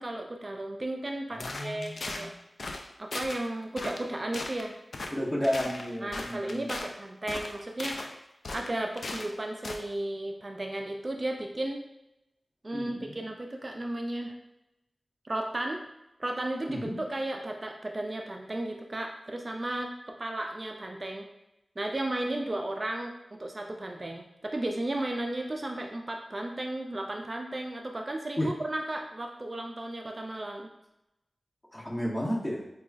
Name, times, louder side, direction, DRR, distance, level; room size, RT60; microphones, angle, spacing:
voice 1, 0.0-2.3 3.0-4.8 6.0-8.2 8.5-11.8 12.6-14.3 15.2-15.8 16.2-21.3 21.8-30.7, right 1 dB, 40° right, 2 dB, 0.3 m, -34 dB
voice 2, 1.3-2.3 5.1-6.7 12.7-13.3 16.7-16.9 28.4-28.5 31.7-32.6, equal, 25° left, -4 dB, 0.9 m, -32 dB
sound 1, 1.4-2.3 2.6-2.8 3.1-3.4 3.8-4.1 4.3-4.6 4.9-5.1 5.4-6.9 7.3-8.1 8.4-9.3 9.6-9.8, left 2 dB, 75° left, 0.3 m, -37 dB
4.8 x 2.3 x 2.4 m, 0.89 s
wide cardioid pair, 70°, 0 cm